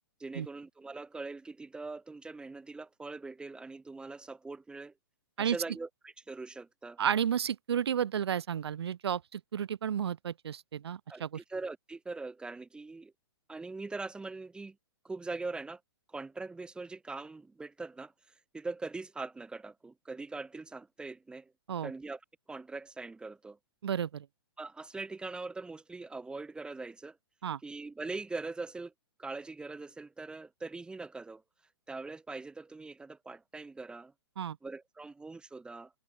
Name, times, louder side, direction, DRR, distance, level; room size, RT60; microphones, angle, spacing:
voice 1, 0.2-4.9 5.4-7.0 11.1-13.1 13.5-14.8 15.0-15.8 16.1-18.1 18.5-21.5 21.8-22.2 22.5-23.6 24.6-27.2 27.6-28.9 29.2-31.4 31.9-34.1 34.6-35.9, right 3 dB, 5° right, 7.9 m, -42 dB
voice 2, 7.0-11.4 21.7-21.9 23.8-24.3 27.4-27.6 34.4-34.6, right 8 dB, 75° right, 2.3 m, -32 dB
hypercardioid pair, 145°, 14 cm